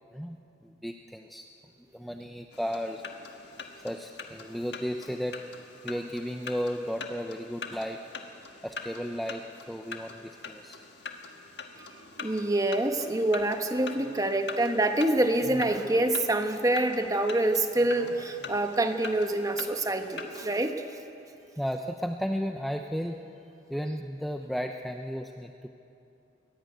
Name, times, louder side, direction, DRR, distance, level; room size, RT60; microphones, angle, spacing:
voice 1, 0.6-1.5 1.9-3.0 3.8-5.4 5.8-8.0 8.6-10.8 21.6-23.2 23.7-25.7, equal, ahead, 4 dB, 0.6 m, -34 dB
sound 1, 2.5-20.5, left 4 dB, 65° left, 1.7 m, -44 dB
voice 2, 12.2-20.8, right 1 dB, 20° right, 6 dB, 1.2 m, -26 dB
22.5 x 17.0 x 9.3 m, 2.9 s
head